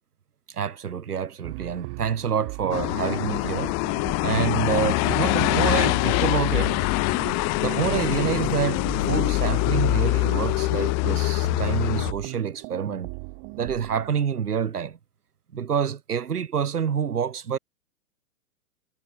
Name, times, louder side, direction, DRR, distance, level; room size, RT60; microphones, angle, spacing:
voice 1, 0.5-3.7 4.2-6.8 7.6-13.1 13.6-15.0 15.5-17.6, right 7 dB, 70° right, 2.7 m, -27 dB
sound 1, 1.4-14.2, right 37 dB, 35° right, 4.3 m, -38 dB
sound 2, 2.7-12.1, left 27 dB, 35° left, 5.8 m, -24 dB
figure-of-eight pair, 115°, 47 cm